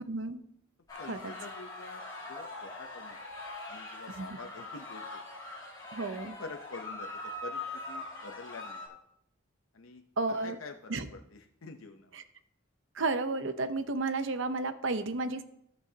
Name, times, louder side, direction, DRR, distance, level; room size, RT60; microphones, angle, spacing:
voice 1, 0.0-0.4 1.1-1.3 4.2-4.4 5.9-6.4 10.2-10.6 10.9-11.1 12.1-12.2 12.9-15.4, right 3 dB, 70° right, 10 dB, 0.8 m, -32 dB
sound 1, 0.9-8.9, left 2 dB, 20° left, 4.9 m, -42 dB
voice 2, 1.0-2.0 2.3-3.2 3.7-5.2 6.1-9.0 9.7-10.0 10.3-12.2, left 3 dB, 85° left, 5 dB, 0.7 m, -47 dB
18.5 x 6.9 x 2.8 m, 0.74 s
head